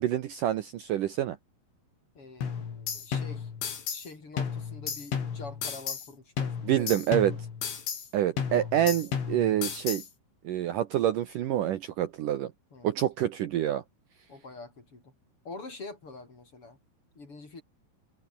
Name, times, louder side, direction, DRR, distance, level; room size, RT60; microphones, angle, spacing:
voice 1, 0.0-1.4 6.6-7.4 8.1-10.0 10.4-12.5 12.8-13.8, right 12 dB, 90° right, 1.8 m, -27 dB
voice 2, 2.2-3.5 3.9-7.0 8.5-8.7 12.7-12.9 14.3-15.1 15.5-16.8 17.2-17.6, left 3 dB, 30° left, 5.4 m, -45 dB
sound 1, 2.4-4.1 4.4-6.1 6.4-8.1 8.4-10.1, left 7 dB, 75° left, 7.2 m, -33 dB
omnidirectional pair, 5.6 m